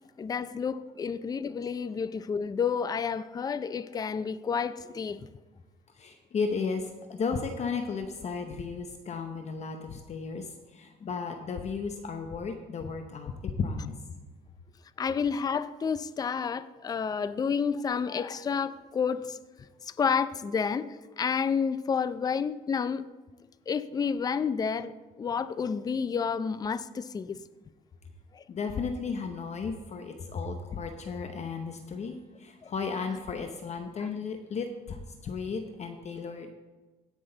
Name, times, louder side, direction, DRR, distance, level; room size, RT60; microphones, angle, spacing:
voice 1, 0.2-5.3 15.0-19.4 19.8-23.1 23.7-24.9 25.2-27.4 28.3-28.4 32.6-32.7 34.0-34.1, left 6 dB, 20° left, 0.4 m, -30 dB
voice 2, 5.9-14.0 28.5-36.5, left 5 dB, 40° left, 0.9 m, -34 dB
16.5 x 6.2 x 3.9 m
cardioid pair, 110°, 17 cm